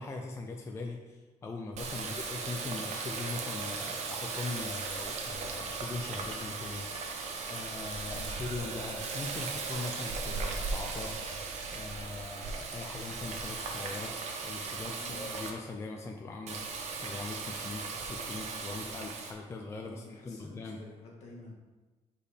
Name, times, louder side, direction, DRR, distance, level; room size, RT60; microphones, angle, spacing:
voice 1, 0.0-11.2 11.7-14.1 14.4-20.8, left 3 dB, 20° left, 2 dB, 0.4 m, -41 dB
Water tap faucet, 1.7-15.5 16.5-19.3, right 4 dB, 60° right, 0.9 m, -37 dB
voice 2, 8.0-8.4 15.0-15.4 19.8-21.5, left 2 dB, 60° left, -3 dB, 1.6 m, -50 dB
5.2 x 4.5 x 5.0 m, 1.2 s
cardioid pair, 175°, 13 cm